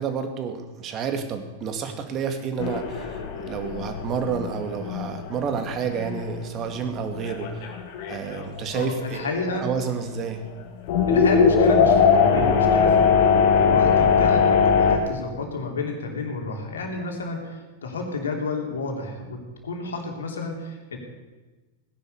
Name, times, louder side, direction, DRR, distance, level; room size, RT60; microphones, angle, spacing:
voice 1, 0.0-7.7 8.1-10.5, right 6 dB, 35° right, 6 dB, 2.3 m, -30 dB
sound 1, 2.6-6.3 6.7-6.8 7.2-8.8 9.4-9.5 10.9-15.0, left 6 dB, 55° left, 2.5 m, -20 dB
voice 2, 8.7-9.7 11.1-13.3 13.5-21.0, left 3 dB, 75° left, 2 dB, 3.3 m, -31 dB
17.5 x 10.5 x 6.8 m, 1.2 s
figure-of-eight pair, 95°, 0 cm